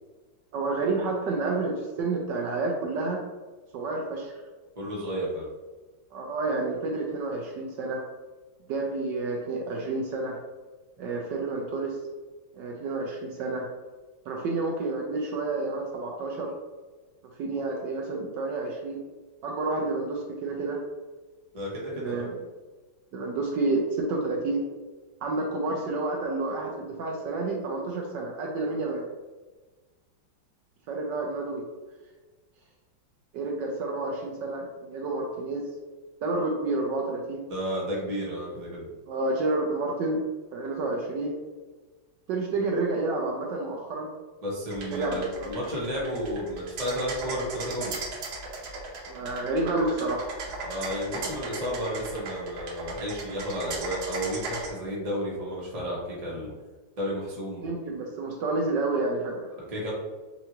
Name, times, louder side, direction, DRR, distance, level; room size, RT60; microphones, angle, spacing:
voice 1, 0.5-3.2 3.7-4.4 6.1-8.0 8.7-10.4 11.0-12.0 12.5-13.7 14.3-16.5 17.4-19.0 19.4-20.8 22.0-22.5 23.1-24.6 25.2-29.1 30.9-31.6 33.3-35.6 36.2-37.5 39.1-40.2 40.5-41.4 42.3-44.1 44.9-45.5 49.1-50.3 57.6-59.5, right 3 dB, 70° right, 0 dB, 1.2 m, -29 dB
voice 2, 4.7-5.5 21.5-22.3 37.5-38.8 44.4-48.0 50.6-56.5 57.0-57.7 59.7-59.9, equal, 25° right, -5 dB, 0.9 m, -32 dB
sound 1, 44.7-54.7, right 3 dB, 90° right, 1.7 m, -37 dB
5.5 x 2.6 x 2.9 m, 1.3 s
omnidirectional pair, 2.1 m